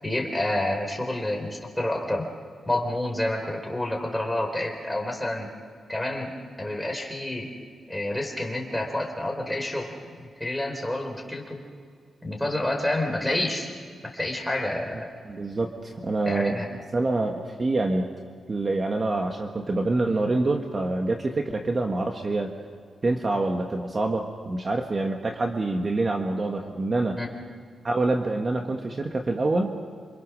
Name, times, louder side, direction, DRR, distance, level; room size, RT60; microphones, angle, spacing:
voice 1, 0.0-2.3 2.7-5.5 5.9-6.3 6.6-7.5 7.9-11.6 12.2-13.7 14.1-15.1 16.2-16.7 27.2-27.3, left 1 dB, 5° left, 1 dB, 4.4 m, -29 dB
voice 2, 15.3-16.6 16.9-18.1 18.5-22.5 23.0-27.2 27.8-29.7, right 2 dB, 35° right, 3 dB, 1.6 m, -26 dB
28.0 x 26.5 x 6.4 m, 2.1 s
wide cardioid pair, 115°, 0 cm